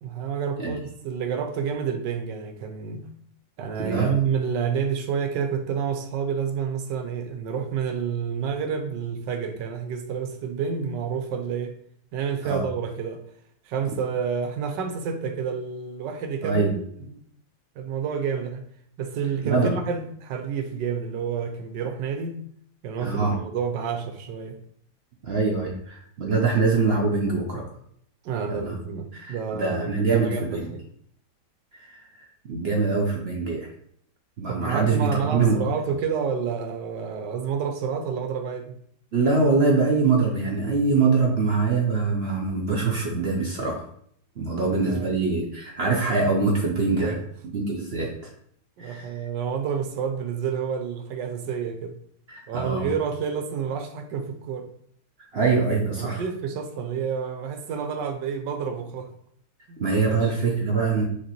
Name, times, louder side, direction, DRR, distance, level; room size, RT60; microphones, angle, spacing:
voice 1, 0.0-3.1 3.6-11.7 12.1-13.2 13.7-17.2 17.8-18.6 19.0-22.4 22.8-24.6 28.2-30.8 34.5-38.8 44.4-45.1 47.0-47.2 48.8-52.0 52.5-54.7 56.0-59.1 59.7-60.3, right 6 dB, 85° right, 6 dB, 1.3 m, -29 dB
voice 2, 3.8-4.1 12.4-12.7 16.4-16.7 19.4-19.7 23.0-23.4 25.2-27.7 28.5-28.8 29.1-30.7 31.7-33.7 34.4-35.6 39.1-43.9 44.4-48.3 48.8-49.2 52.3-52.9 55.3-56.2 59.8-61.0, right 4 dB, 60° right, -1 dB, 0.6 m, -24 dB
5.9 x 2.9 x 2.9 m, 0.64 s
omnidirectional pair, 1.9 m